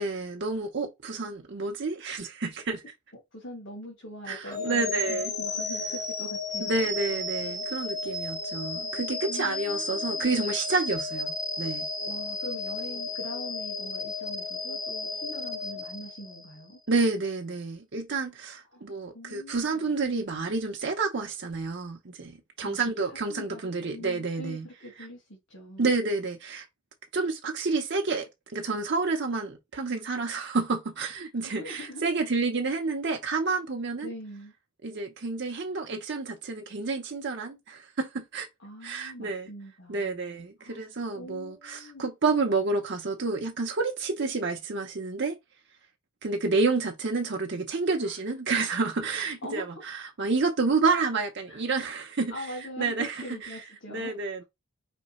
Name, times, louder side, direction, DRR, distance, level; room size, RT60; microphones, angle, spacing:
voice 1, 0.0-2.8 4.3-5.3 6.6-11.9 16.9-24.7 25.8-26.7 27.1-34.1 34.8-38.5 38.8-39.5 39.9-45.4 46.2-53.2 53.4-53.6 53.9-54.4, right 3 dB, 55° right, 0.7 m, -29 dB
voice 2, 3.3-6.8 9.3-10.3 12.1-16.8 18.7-18.8 19.1-19.9 22.6-22.8 23.1-25.9 31.4-32.0 34.0-34.5 38.6-40.3 40.6-40.8 41.1-42.0 48.0-48.2 49.4-49.8 51.5-51.6 52.3-54.2, left 1 dB, 60° left, 1.7 m, -43 dB
sound 1, 4.5-16.6, left 3 dB, 15° left, 0.8 m, -33 dB
5.2 x 3.2 x 3.0 m
head